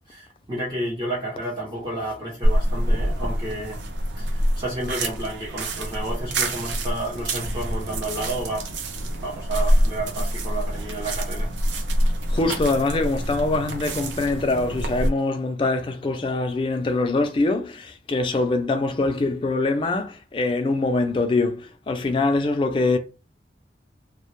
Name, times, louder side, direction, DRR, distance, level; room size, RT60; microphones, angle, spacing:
voice 1, 0.1-3.8 4.2-11.5, right 1 dB, 25° right, 0.6 m, -31 dB
sound 1, 2.4-15.1, equal, 85° right, 0.4 m, -26 dB
voice 2, 12.3-23.0, left 2 dB, 30° left, 0.3 m, -23 dB
2.0 x 2.0 x 3.0 m
head